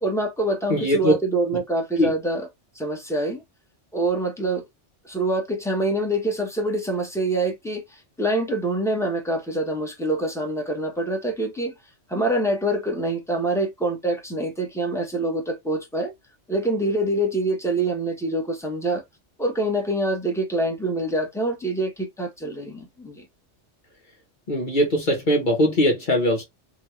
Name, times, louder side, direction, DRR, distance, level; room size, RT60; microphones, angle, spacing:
voice 1, 0.0-2.5 2.7-3.4 3.9-4.6 5.0-11.7 12.1-16.1 16.5-19.0 19.4-23.3, right 1 dB, 5° left, 0.9 m, -25 dB
voice 2, 0.7-1.1 2.0-2.1 24.5-26.4, equal, 40° left, 1.4 m, -20 dB
3.8 x 2.4 x 3.1 m
omnidirectional pair, 1.2 m